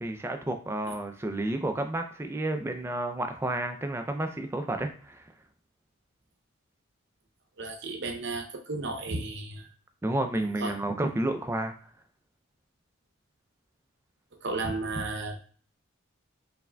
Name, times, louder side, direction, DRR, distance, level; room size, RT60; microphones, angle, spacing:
voice 1, 0.0-5.3 10.0-11.7, right 1 dB, 10° right, 6 dB, 0.3 m, -31 dB
voice 2, 7.6-9.7 10.6-10.7 14.4-15.4, right 3 dB, 55° right, 4 dB, 0.6 m, -33 dB
4.6 x 3.4 x 2.2 m, 0.44 s
head